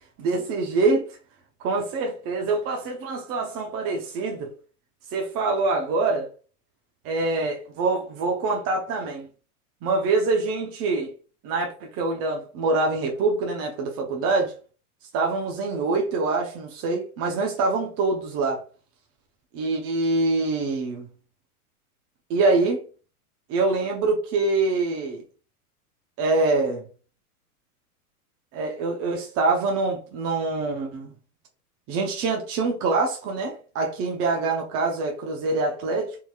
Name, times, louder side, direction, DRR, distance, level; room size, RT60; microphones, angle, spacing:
voice 1, 0.2-1.2 1.6-4.5 5.1-6.3 7.0-9.3 9.8-11.1 11.4-14.5 15.1-18.6 19.5-21.1 22.3-22.8 23.5-25.2 26.2-26.9 28.5-31.1 31.9-36.2, right 3 dB, 30° right, 0.7 m, -25 dB
3.7 x 2.8 x 2.3 m
hypercardioid pair, 120°, 45 cm